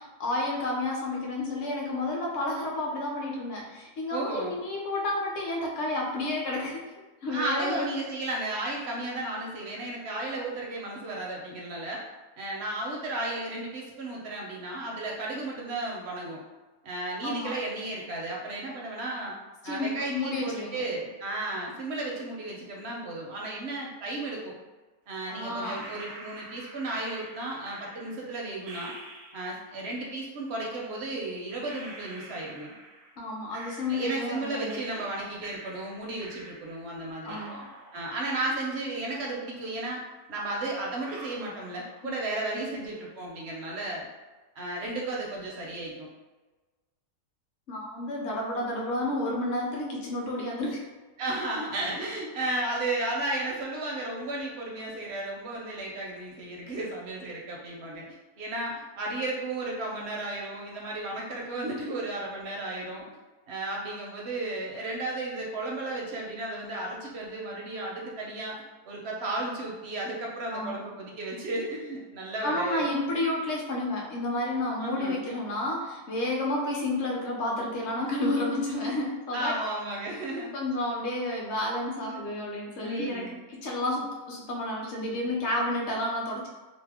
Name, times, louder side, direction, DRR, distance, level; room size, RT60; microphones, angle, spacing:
voice 1, 0.0-6.9 7.2-7.9 17.2-17.5 19.6-20.8 25.3-25.8 33.2-34.8 37.2-37.6 42.5-42.6 47.7-50.9 70.5-70.8 72.4-79.5 80.5-83.3 83.5-86.5, left 1 dB, 60° left, -2 dB, 0.9 m, -31 dB
voice 2, 4.1-4.6 7.3-12.0 12.4-16.4 16.8-19.3 19.6-24.5 25.1-29.0 29.3-32.7 33.9-37.4 37.9-40.0 40.3-44.1 44.6-46.1 51.2-63.1 63.5-68.6 68.9-72.9 74.8-75.2 79.0-79.1 79.3-80.5 82.8-83.4, right 2 dB, 60° right, -2 dB, 0.7 m, -34 dB
sound 1, 25.6-29.7 30.8-30.9 31.6-34.3 34.7-36.9 37.2-39.3 39.6-39.7 40.4-40.5 41.0-42.4 42.6-43.2, right 2 dB, 85° right, 1.1 m, -47 dB
2.7 x 2.0 x 3.4 m, 1.2 s
omnidirectional pair, 1.6 m